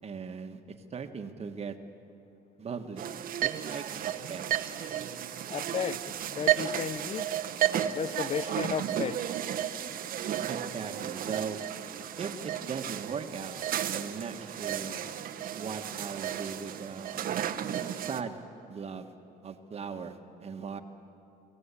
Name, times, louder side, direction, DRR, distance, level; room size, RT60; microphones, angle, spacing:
voice 1, 0.0-1.8 2.6-3.1 3.4-4.4 10.5-11.6 12.2-13.6 13.8-15.0 15.6-17.3 17.9-18.4 18.7-19.1 19.4-20.8, right 6 dB, 40° right, 6 dB, 1.6 m, -39 dB
sound 1, 3.0-18.2, right 10 dB, 60° right, 1.0 m, -33 dB
voice 2, 5.5-7.3 7.9-9.2, left 8 dB, 40° left, 19 dB, 0.6 m, -34 dB
24.5 x 16.5 x 8.5 m, 2.7 s
cardioid pair, 110°, 17 cm